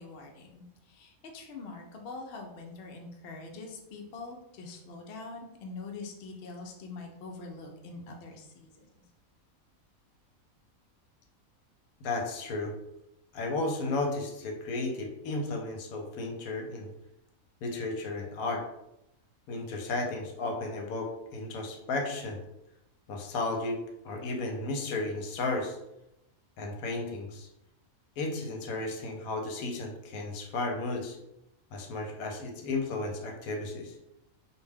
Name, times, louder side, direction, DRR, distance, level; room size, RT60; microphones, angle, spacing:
voice 1, 0.0-8.9, left 3 dB, 65° left, 2 dB, 0.6 m, -44 dB
voice 2, 12.0-12.7 13.3-16.9 17.6-18.6 19.5-22.4 23.1-23.8 24.0-25.8 26.6-27.5 28.2-31.2 31.7-33.9, left 2 dB, 80° left, 2 dB, 1.0 m, -33 dB
2.5 x 2.2 x 3.3 m, 0.86 s
omnidirectional pair, 1.5 m